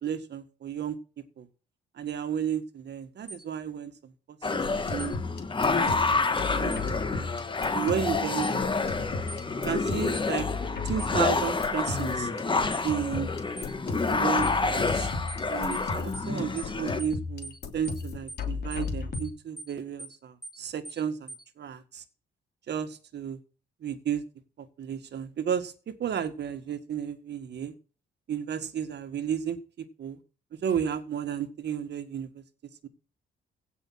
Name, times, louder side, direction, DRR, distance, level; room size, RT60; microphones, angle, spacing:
voice 1, 0.0-1.0 1.4-1.5 2.0-4.1 4.5-5.2 5.7-7.3 7.7-9.1 9.6-10.5 10.9-12.3 12.5-13.3 14.1-15.1 15.5-22.0 22.7-23.4 23.8-24.2 24.6-27.7 28.3-29.6 30.0-30.2 30.5-32.4 32.8-32.9, right 8 dB, 60° right, 1.8 m, -33 dB
sound 1, 3.3-3.4 5.0-5.2 6.7-6.9 8.4-8.6 9.3-9.4 10.1-10.3 11.0-11.2 11.8-12.0 12.7-12.9 13.6-13.7 14.4-14.6 15.3-15.4 15.7-15.9 16.1-16.3 16.6-16.7 17.0-17.2 17.4-17.6 17.8-18.0 18.3-18.4 18.7-18.9 19.1-19.3 19.6-19.7 20.0-20.2 20.4-20.6 20.8-21.0 21.3-21.4, right 2 dB, ahead, 2.9 m, -42 dB
sound 2, 4.4-17.0, left 3 dB, 25° left, 1.6 m, -28 dB
Drum loop and hit Fx, 4.5-19.3, left 4 dB, 55° left, 3.0 m, -36 dB
16.5 x 5.6 x 5.9 m
cardioid pair, 90°, 20 cm